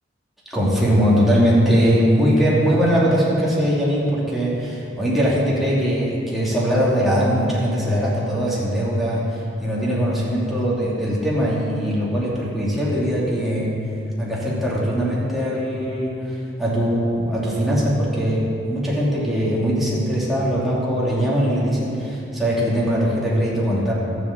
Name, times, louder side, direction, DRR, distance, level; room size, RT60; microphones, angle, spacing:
voice 1, 0.5-13.7 14.2-23.9, equal, ahead, -8 dB, 2.8 m, -21 dB
12.5 x 7.9 x 7.3 m, 2.6 s
head